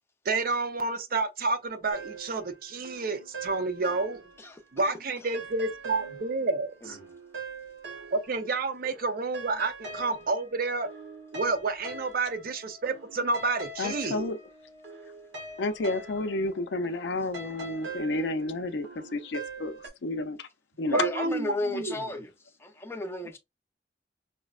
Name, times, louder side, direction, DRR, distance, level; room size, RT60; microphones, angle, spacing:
voice 1, 0.3-4.2 4.7-7.0 8.1-10.9 11.3-14.3 20.9-22.1, right 3 dB, 55° right, 0.5 m, -29 dB
sound 1, 1.9-4.5 4.8-8.6 8.8-19.9, right 3 dB, 85° right, 0.9 m, -43 dB
voice 2, 13.8-14.4 15.6-20.5 20.8-21.1, left 2 dB, 80° left, 0.5 m, -31 dB
voice 3, 20.9-22.3 22.6-23.4, left 1 dB, 15° left, 0.5 m, -33 dB
4.9 x 2.1 x 2.3 m
head